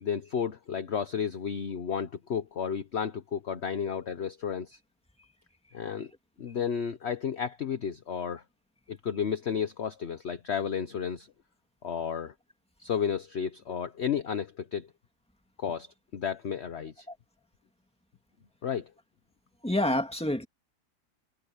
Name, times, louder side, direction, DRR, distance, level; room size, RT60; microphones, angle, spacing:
voice 1, 0.0-4.8 5.7-6.1 6.4-8.4 8.9-11.3 11.8-12.3 12.8-14.9 15.6-17.1 18.6-18.9, left 7 dB, 50° left, 1.1 m, -32 dB
voice 2, 19.6-20.5, left 1 dB, 5° left, 2.4 m, -27 dB
omnidirectional pair, 1.7 m